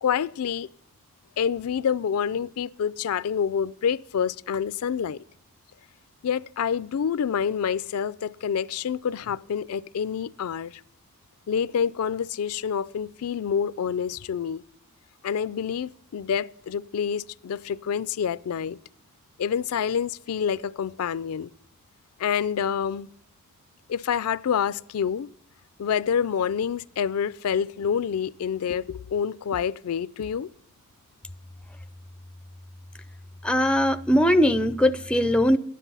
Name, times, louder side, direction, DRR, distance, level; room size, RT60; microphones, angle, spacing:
voice 1, 0.0-0.7 1.4-5.2 6.2-10.8 11.5-14.6 15.2-18.8 19.4-21.5 22.2-23.1 23.9-25.3 25.8-30.5, left 7 dB, 70° left, 0.4 m, -27 dB
voice 2, 33.4-35.6, equal, 5° left, 0.4 m, -20 dB
12.5 x 10.0 x 5.5 m
head